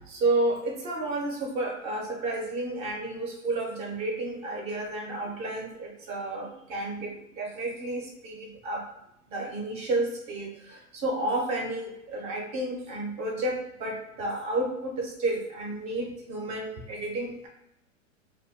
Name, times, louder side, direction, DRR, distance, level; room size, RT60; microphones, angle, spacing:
voice 1, 0.1-8.9 9.3-17.5, right 2 dB, 20° right, 0 dB, 0.4 m, -31 dB
2.2 x 2.1 x 3.5 m, 0.85 s
hypercardioid pair, 130°, 39 cm